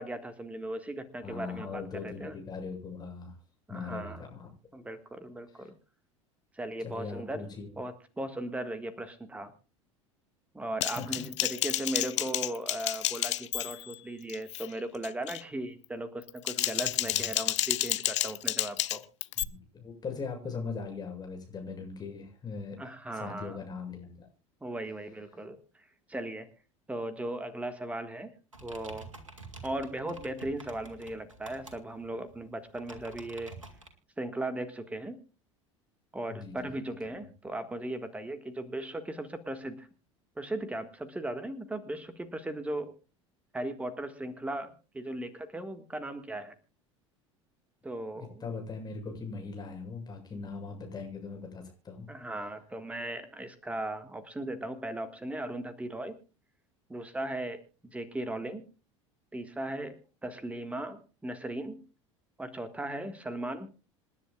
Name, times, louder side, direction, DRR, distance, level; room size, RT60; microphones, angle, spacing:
voice 1, 0.0-2.4 3.7-4.2 4.7-5.8 6.5-7.5 7.8-9.5 10.5-19.0 22.8-23.6 24.6-26.5 26.9-28.3 28.6-29.1 29.6-33.5 34.2-35.2 36.1-39.9 40.4-42.9 43.5-46.5 47.8-48.5 52.1-56.2 56.9-57.6 57.9-58.7 59.3-61.8 62.4-63.7, right 1 dB, 10° right, 10 dB, 1.6 m, -37 dB
voice 2, 1.2-3.4 3.7-4.5 5.6-5.7 6.8-7.8 10.9-11.3 17.1-17.2 19.4-22.8 23.1-24.3 36.3-36.7 48.2-52.1, left 4 dB, 25° left, 2 dB, 7.5 m, -40 dB
Typing, 10.8-14.0 14.3-14.7 15.0-15.4 16.2-19.4, left 14 dB, 65° left, 0.6 m, -31 dB
sound 1, 28.5-33.9, right 3 dB, 85° right, 2.2 m, -49 dB
27.5 x 10.5 x 2.4 m, 0.32 s
figure-of-eight pair, 70°, 16 cm